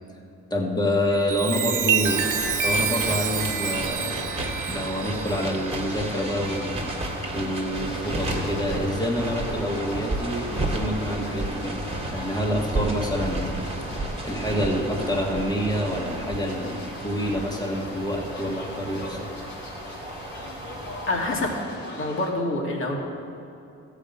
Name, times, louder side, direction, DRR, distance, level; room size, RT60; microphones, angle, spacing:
voice 1, 0.5-2.3 2.6-4.2 4.7-19.3 20.1-20.2, left 1 dB, 15° left, -1 dB, 1.9 m, -27 dB
Chime, 1.0-7.0 7.6-7.9, right 7 dB, 80° right, 0.9 m, -28 dB
sound 1, 2.0-21.6, right 1 dB, 20° right, 1.9 m, -32 dB
sound 2, 5.8-22.3, left 2 dB, 85° left, 2.2 m, -43 dB
voice 2, 21.1-21.6 21.9-23.0, left 2 dB, 45° left, 0 dB, 2.2 m, -26 dB
14.0 x 5.1 x 8.4 m, 2.7 s
cardioid pair, 90°, 30 cm